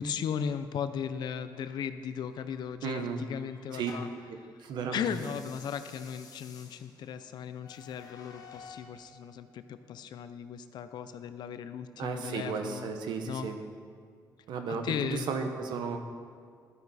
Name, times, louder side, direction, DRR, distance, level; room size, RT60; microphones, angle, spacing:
voice 1, 0.0-4.1 4.4-4.5 4.9-12.9 13.3-13.5 14.7-15.3, left 7 dB, 80° left, 11 dB, 0.5 m, -36 dB
sound 1, 2.5-4.3 5.0-9.0, left 5 dB, 60° left, 1.2 m, -52 dB
voice 2, 2.8-3.2 3.7-3.9 4.6-5.0 12.0-13.6 14.5-16.0, right 5 dB, 90° right, 6 dB, 0.9 m, -34 dB
11.5 x 8.8 x 4.2 m, 2.2 s
cardioid pair, 95°, 7 cm